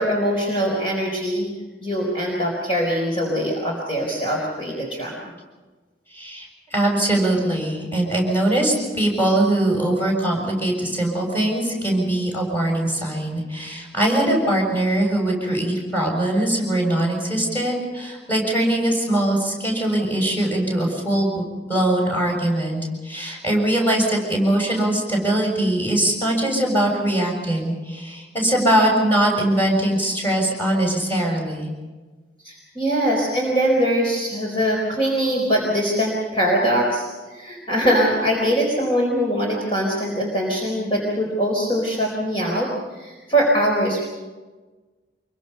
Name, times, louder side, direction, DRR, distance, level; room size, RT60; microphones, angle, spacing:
voice 1, 0.0-1.5 1.8-5.3 32.4-44.0, equal, 30° left, -2 dB, 4.4 m, -22 dB
voice 2, 6.1-21.3 21.7-31.7, right 1 dB, 10° left, -1 dB, 6.9 m, -21 dB
26.0 x 23.5 x 5.6 m, 1.3 s
head